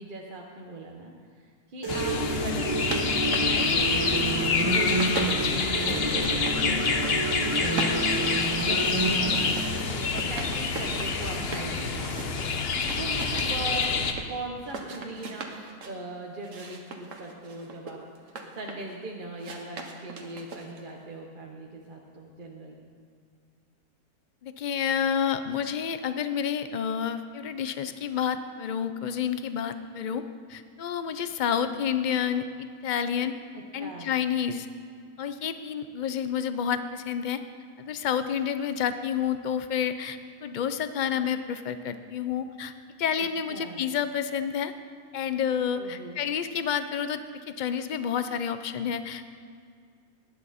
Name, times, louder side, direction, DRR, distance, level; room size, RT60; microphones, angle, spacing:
voice 1, 0.0-13.9 14.3-18.0 18.2-22.9 33.5-34.1 43.5-43.8 45.8-46.2, right 2 dB, 40° right, 0 dB, 1.1 m, -40 dB
sound 1, 1.8-9.8, right 2 dB, 15° right, 1.4 m, -30 dB
sound 2, 1.9-14.1, left 4 dB, 50° left, 1.0 m, -27 dB
sound 3, 2.7-4.4 4.7-6.6 6.9-7.4 7.7-11.7 12.0-14.3 14.6-16.0 16.4-18.9 19.4-20.9, right 3 dB, 60° right, 1.5 m, -39 dB
voice 2, 24.4-30.2 30.5-33.3 33.7-34.7 35.2-37.4 37.8-42.7 43.0-44.7 45.1-47.2 47.5-49.3, left 8 dB, 70° left, 10 dB, 0.4 m, -29 dB
18.5 x 10.5 x 4.2 m, 2.2 s
omnidirectional pair, 1.5 m